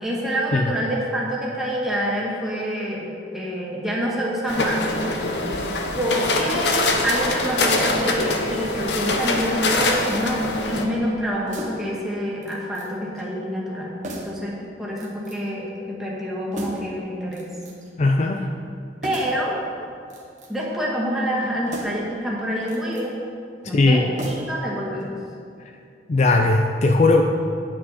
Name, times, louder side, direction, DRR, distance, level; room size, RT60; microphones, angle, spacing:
voice 1, 0.0-4.8 5.9-13.9 14.2-17.5 19.0-19.6 20.5-23.1 23.7-25.1, equal, ahead, -6 dB, 1.8 m, -27 dB
sound 1, 4.5-10.9, left 2 dB, 75° left, 0.9 m, -23 dB
Recharge carabine, 9.9-10.3 11.5-12.0 12.4-12.9 13.2-13.3 14.0-14.4 15.0-15.5 16.5-17.0 17.3-17.9 19.0-19.4 20.0-20.7 21.7-22.1 22.6-23.1 24.2-24.7 25.0-25.1, right 1 dB, 45° right, 1.3 m, -36 dB
voice 2, 18.0-18.5 23.7-24.1 26.1-27.2, left 2 dB, 40° left, 3 dB, 0.4 m, -18 dB
9.4 x 8.8 x 4.2 m, 2.5 s
head